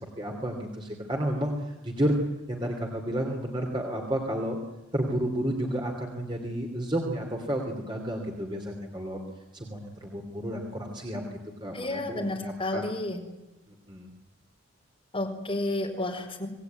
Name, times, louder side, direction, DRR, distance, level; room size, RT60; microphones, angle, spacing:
voice 1, 0.0-2.1 2.5-4.6 4.9-9.2 9.5-12.9 13.7-14.1, right 1 dB, 20° right, 2 dB, 3.0 m, -31 dB
voice 2, 11.7-13.2 15.1-16.5, left 2 dB, 25° left, 1 dB, 4.8 m, -31 dB
26.5 x 19.0 x 9.5 m, 1.1 s
head